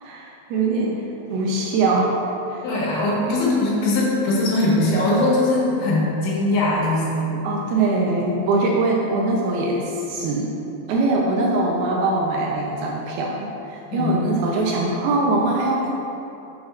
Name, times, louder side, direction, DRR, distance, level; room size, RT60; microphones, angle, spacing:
voice 1, 0.0-2.1 2.5-2.6 3.2-3.3 7.4-10.6 10.9-15.9, right 2 dB, 90° right, -2 dB, 2.2 m, -22 dB
voice 2, 2.6-7.3 13.9-14.1, left 2 dB, 85° left, -5 dB, 3.8 m, -21 dB
9.6 x 6.3 x 2.4 m, 2.9 s
omnidirectional pair, 5.2 m